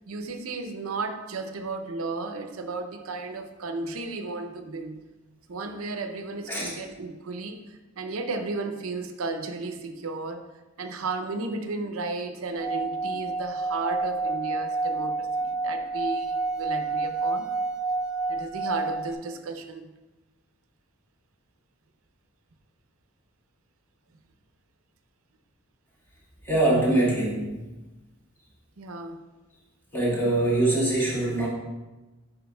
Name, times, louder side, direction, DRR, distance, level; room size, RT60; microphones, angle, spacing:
voice 1, 0.0-5.0 5.5-10.4 10.8-17.5 18.3-19.9 28.8-29.2, right 3 dB, 75° right, 7 dB, 0.6 m, -34 dB
Singing / Glass, 12.5-19.1, right 3 dB, 5° right, 0.6 m, -29 dB
voice 2, 26.4-27.7 29.9-31.5, right 2 dB, 10° left, -7 dB, 2.0 m, -23 dB
9.4 x 5.7 x 2.3 m, 1.1 s
head